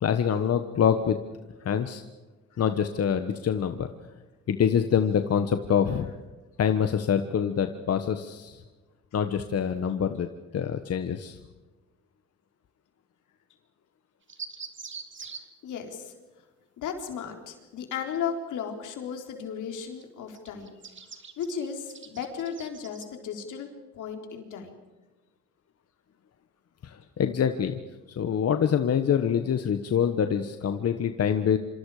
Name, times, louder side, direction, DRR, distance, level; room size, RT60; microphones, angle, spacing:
voice 1, 0.0-1.2 1.6-2.0 2.6-3.9 4.5-6.1 6.6-8.6 9.1-10.3 10.5-11.4 26.8-27.8 28.1-31.6, left 8 dB, 55° left, 8 dB, 1.4 m, -25 dB
sound 1, 14.3-15.4 19.7-20.0 20.3-23.1, right 5 dB, 40° right, 2.6 m, -43 dB
voice 2, 15.2-16.1 16.8-20.8 21.0-23.7 23.9-24.7, left 7 dB, 80° left, 3 dB, 4.1 m, -35 dB
27.0 x 26.0 x 5.0 m, 1.2 s
cardioid pair, 90°, 30 cm